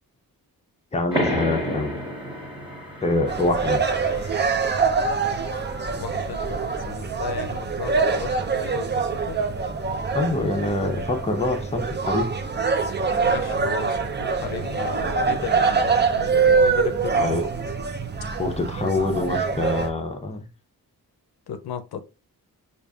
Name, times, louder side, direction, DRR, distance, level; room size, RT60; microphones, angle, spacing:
voice 1, 0.9-1.9 3.0-3.8 10.1-12.3 17.2-17.4 18.4-20.5, left 2 dB, 20° left, 0.7 m, -25 dB
sound 1, 1.1-6.3, left 1 dB, 15° right, 1.2 m, -32 dB
sound 2, 3.3-19.9, right 5 dB, 30° right, 0.5 m, -24 dB
voice 2, 5.9-9.4 13.1-17.3 17.7-17.8 21.5-22.1, left 7 dB, 85° left, 0.6 m, -35 dB
4.9 x 2.5 x 2.3 m
wide cardioid pair, 100°, 37 cm